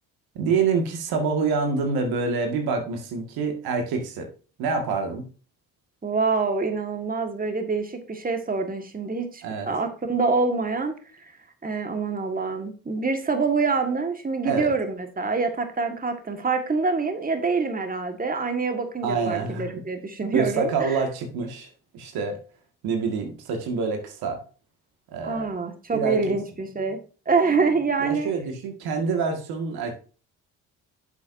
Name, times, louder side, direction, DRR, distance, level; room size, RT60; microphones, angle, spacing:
voice 1, 0.4-4.3 4.6-5.3 9.4-9.7 14.4-14.7 19.0-19.7 20.3-21.7 21.9-22.4 22.8-24.4 25.1-25.5 25.9-26.3 28.0-29.9, right 5 dB, 85° right, 4 dB, 1.9 m, -26 dB
voice 2, 6.0-11.3 11.6-21.0 25.2-27.0 27.3-28.3, right 4 dB, 25° right, 6 dB, 1.7 m, -26 dB
9.6 x 7.2 x 2.6 m, 0.36 s
supercardioid pair, 75°, 36 cm